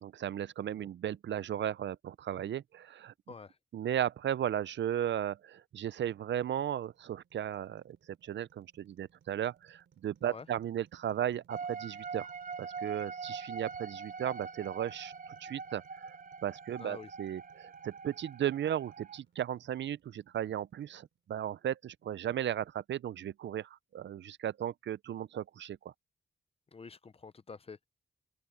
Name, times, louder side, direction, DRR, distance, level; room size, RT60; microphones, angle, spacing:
voice 1, 0.0-3.1 3.7-12.3 12.6-16.1 16.4-25.9, right 10 dB, 75° right, 0.5 m, -36 dB
sound 1, 6.1-21.3, right 7 dB, 90° right, 4.1 m, -68 dB
sound 2, 11.5-19.2, right 5 dB, 45° right, 0.8 m, -43 dB
voice 2, 16.8-17.1 26.7-27.8, left 4 dB, 30° left, 0.6 m, -47 dB
open air
wide cardioid pair, 115°, 19 cm